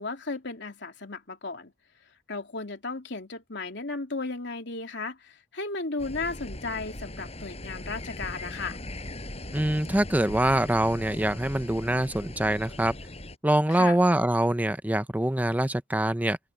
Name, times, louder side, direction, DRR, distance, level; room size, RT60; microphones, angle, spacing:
voice 1, 0.0-1.7 2.3-8.8 13.7-14.0, left 3 dB, 70° left, 3.1 m, -35 dB
sound 1, 6.0-13.4, left 1 dB, 35° left, 5.9 m, -39 dB
voice 2, 9.5-12.9 13.4-16.4, right 1 dB, 10° right, 0.7 m, -24 dB
open air
head